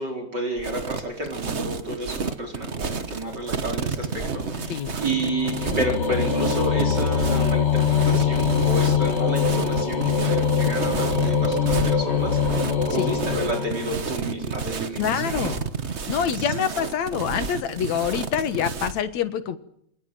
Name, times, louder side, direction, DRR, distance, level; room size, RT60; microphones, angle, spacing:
voice 1, 0.0-15.6 16.3-16.5, right 1 dB, 35° right, 4 dB, 4.7 m, -31 dB
sound 1, 0.6-19.0, right 5 dB, 65° right, 0.6 m, -30 dB
sound 2, 3.4-14.3, left 7 dB, 35° left, 1.2 m, -24 dB
voice 2, 15.0-15.6 16.1-19.6, left 8 dB, 70° left, 11 dB, 2.7 m, -26 dB
28.0 x 25.0 x 7.6 m, 0.72 s
omnidirectional pair, 3.4 m